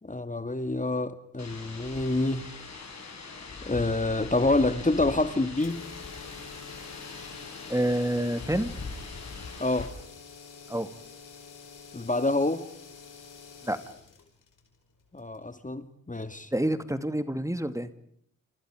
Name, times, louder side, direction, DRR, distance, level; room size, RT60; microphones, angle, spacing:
voice 1, 0.0-2.5 3.6-5.8 9.6-9.9 11.9-12.6 15.1-16.5, left 2 dB, 25° left, 11 dB, 2.3 m, -27 dB
sound 1, 1.4-9.9, left 4 dB, 60° left, 7.3 m, -41 dB
sound 2, 5.6-15.7, left 5 dB, 85° left, 4.9 m, -48 dB
voice 2, 7.7-8.7 10.7-10.9 13.6-13.8 16.5-17.9, right 1 dB, 10° right, 11 dB, 2.4 m, -27 dB
29.5 x 29.0 x 5.1 m, 0.65 s
supercardioid pair, 40°, 31 cm